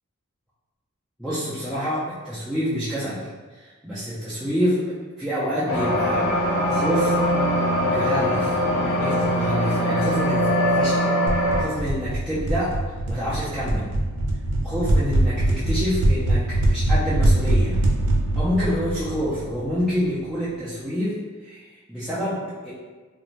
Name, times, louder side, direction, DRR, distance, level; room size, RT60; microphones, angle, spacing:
voice 1, 1.2-6.3 6.7-7.2 7.8-11.1 11.6-12.7 13.1-13.9 14.6-17.8 18.4-22.7, equal, ahead, -12 dB, 0.4 m, -27 dB
sound 1, 5.7-11.6, equal, 60° left, 0.6 m, -22 dB
sound 2, 11.3-19.9, right 1 dB, 80° right, 0.5 m, -23 dB
2.5 x 2.0 x 3.0 m, 1.4 s
head